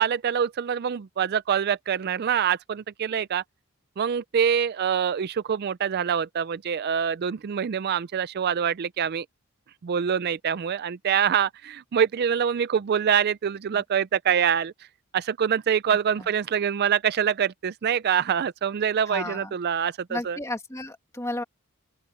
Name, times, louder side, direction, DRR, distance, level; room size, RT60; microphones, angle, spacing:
voice 1, 0.0-3.4 4.0-9.3 9.8-14.7 15.1-20.4, right 8 dB, 45° right, 0.4 m, -25 dB
voice 2, 19.1-19.5 20.1-21.4, left 1 dB, 15° left, 1.8 m, -33 dB
open air
head